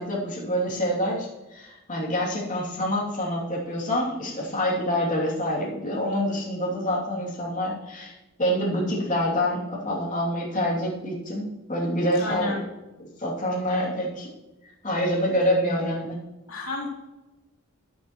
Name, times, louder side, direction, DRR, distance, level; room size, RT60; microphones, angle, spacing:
voice 1, 0.0-8.1 8.4-12.6 13.0-14.3 14.8-16.2, equal, 40° left, -5 dB, 2.8 m, -26 dB
voice 2, 12.2-12.6 16.5-16.9, left 2 dB, 85° left, -2 dB, 3.0 m, -31 dB
11.0 x 10.5 x 3.1 m, 1.0 s
head